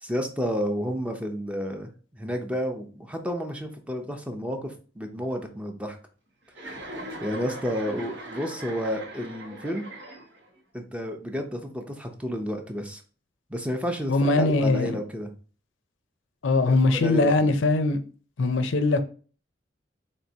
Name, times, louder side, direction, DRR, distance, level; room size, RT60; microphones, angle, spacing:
voice 1, 0.0-6.0 7.2-9.9 10.7-13.0 13.5-15.3 16.7-17.5, equal, 5° right, 0.5 m, -31 dB
Chuckle chortle, 6.5-10.6, right 1 dB, 80° right, 1.2 m, -40 dB
voice 2, 14.1-15.0 16.4-18.0 18.4-19.0, left 2 dB, 85° left, 0.5 m, -21 dB
4.5 x 3.0 x 2.7 m
head